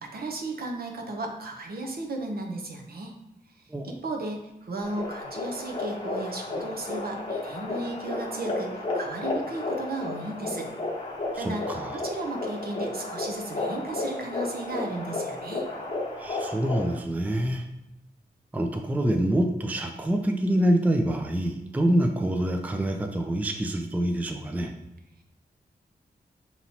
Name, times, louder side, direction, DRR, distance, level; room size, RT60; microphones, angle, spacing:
voice 1, 0.0-3.1 3.8-10.7 11.4-15.6, right 2 dB, 70° right, 2 dB, 0.7 m, -35 dB
sound 1, 4.8-17.0, left 2 dB, 30° left, 1.0 m, -33 dB
voice 2, 11.3-12.0 16.2-17.7 18.5-24.7, right 1 dB, 10° right, 4 dB, 0.3 m, -26 dB
5.4 x 2.9 x 2.8 m, 0.91 s
wide cardioid pair, 120°, 16 cm